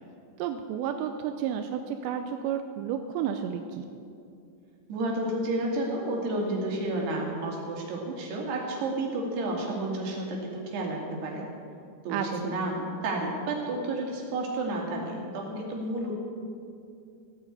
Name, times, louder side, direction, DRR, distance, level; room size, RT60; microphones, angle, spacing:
voice 1, 0.4-3.9 12.1-12.6, right 8 dB, 90° right, 6 dB, 2.8 m, -31 dB
voice 2, 4.9-11.4 12.0-16.1, right 2 dB, 70° right, -1 dB, 4.4 m, -31 dB
16.0 x 9.1 x 8.2 m, 2.4 s
omnidirectional pair, 5.1 m